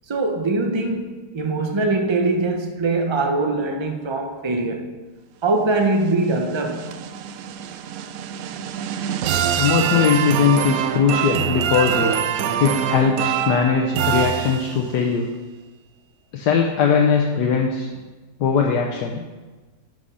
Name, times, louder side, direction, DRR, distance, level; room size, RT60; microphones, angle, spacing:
voice 1, 0.1-5.0 5.4-7.0, right 2 dB, 35° right, 0.4 m, -22 dB
sound 1, 6.1-15.0, right 9 dB, 70° right, 0.8 m, -24 dB
voice 2, 9.5-12.2 12.6-15.3 16.3-17.9 18.4-19.2, left 6 dB, 75° left, 1.4 m, -20 dB
11.0 x 5.2 x 5.5 m
omnidirectional pair, 1.9 m